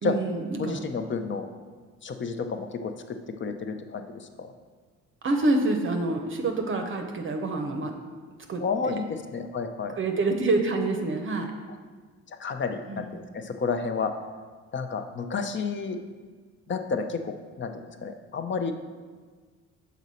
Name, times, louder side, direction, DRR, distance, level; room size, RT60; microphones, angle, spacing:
voice 1, 0.0-0.8 5.2-7.9 8.5-9.0 10.0-11.5 12.9-13.1, right 2 dB, 35° right, 4 dB, 0.7 m, -27 dB
voice 2, 0.6-1.5 2.0-4.5 8.6-10.0 12.4-14.1 14.7-16.0 16.7-18.7, left 5 dB, 35° left, 7 dB, 0.6 m, -31 dB
6.1 x 4.1 x 4.1 m, 1.5 s
supercardioid pair, 65°, 34 cm